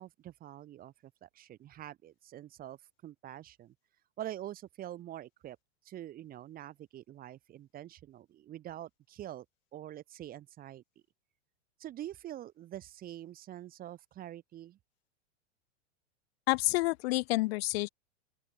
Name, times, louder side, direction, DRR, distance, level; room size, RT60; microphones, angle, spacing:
voice 1, 0.0-3.7 4.2-5.6 5.8-9.5 9.7-10.8 11.8-14.8, right 12 dB, 25° right, 0.8 m, -45 dB
voice 2, 16.5-17.9, left 21 dB, 60° left, 0.6 m, -29 dB
open air
supercardioid pair, 125°, 34 cm